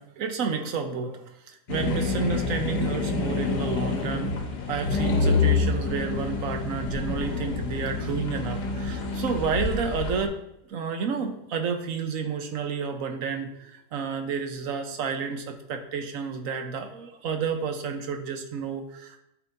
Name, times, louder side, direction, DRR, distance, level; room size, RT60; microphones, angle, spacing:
voice 1, 0.0-4.3 4.7-10.3 10.7-19.2, right 5 dB, 60° right, 6 dB, 1.1 m, -30 dB
sound 1, 1.7-10.2, left 4 dB, 90° left, 1.6 m, -27 dB
12.0 x 4.5 x 2.6 m, 0.83 s
omnidirectional pair, 1.7 m